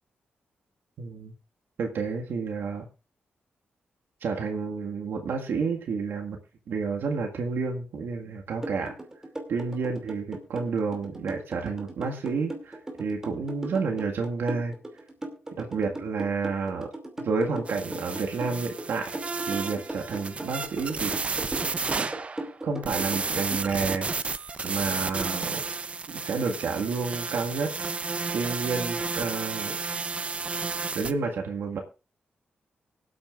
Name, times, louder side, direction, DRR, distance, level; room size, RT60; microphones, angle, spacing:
voice 1, 1.0-1.3 1.8-2.9 4.2-6.4 6.7-8.9 9.5-14.7 15.6-16.9 17.2-19.1 19.5-21.1 22.0-22.1 22.6-24.1 24.6-25.6 26.1-27.7 28.3-29.7 31.0-31.8, right 4 dB, 80° right, 2 dB, 1.8 m, -30 dB
sound 1, 8.6-24.0, right 1 dB, 15° right, 2.6 m, -37 dB
sound 2, 17.7-22.6 22.8-31.1, right 4 dB, 35° right, 0.7 m, -32 dB
24.5 x 8.6 x 2.5 m, 0.31 s
wide cardioid pair, 115°, 4 cm